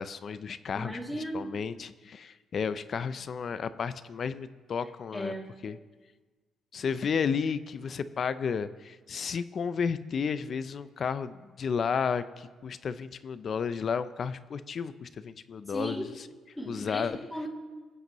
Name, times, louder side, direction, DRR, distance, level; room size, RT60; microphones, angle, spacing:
voice 1, 0.0-1.0 1.3-5.3 5.6-5.8 6.7-16.3 16.7-17.2, left 6 dB, 50° left, 13 dB, 0.5 m, -32 dB
voice 2, 0.7-1.5 5.1-5.5 15.7-16.1 16.6-17.5, equal, 10° left, -1 dB, 2.5 m, -36 dB
23.5 x 7.9 x 3.0 m, 1.3 s
cardioid pair, 90°, 0 cm